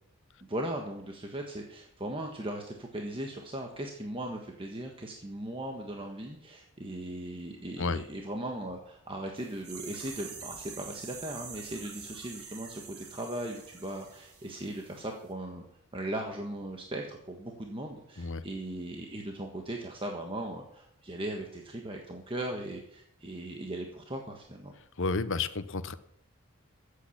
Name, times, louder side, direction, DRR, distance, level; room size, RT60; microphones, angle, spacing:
voice 1, 0.5-15.6 15.9-24.7, right 1 dB, 25° right, 2 dB, 1.5 m, -38 dB
sound 1, 9.4-15.0 15.3-15.4, right 5 dB, 80° right, 3.6 m, -46 dB
voice 2, 25.0-25.9, left 4 dB, 60° left, 13 dB, 0.9 m, -31 dB
14.0 x 8.3 x 8.6 m, 0.74 s
head